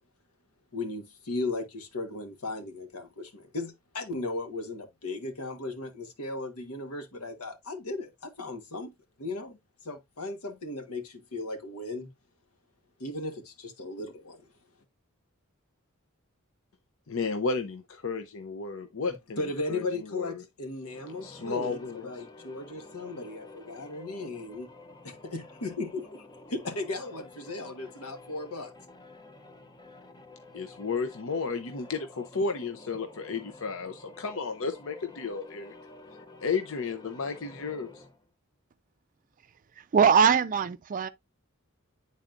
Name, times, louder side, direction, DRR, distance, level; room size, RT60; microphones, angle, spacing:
voice 1, 0.7-8.9 9.2-9.6 9.8-12.1 13.0-14.4 19.4-24.7 25.0-28.7, left 2 dB, 85° left, 1.3 m, -36 dB
voice 2, 17.1-20.4 21.2-22.1 30.5-35.7 36.4-38.0, left 4 dB, 65° left, 0.7 m, -33 dB
sound 1, 20.8-38.3, left 2 dB, 20° left, 0.6 m, -50 dB
voice 3, 39.8-41.1, right 6 dB, 35° right, 0.3 m, -22 dB
10.5 x 4.1 x 2.5 m
head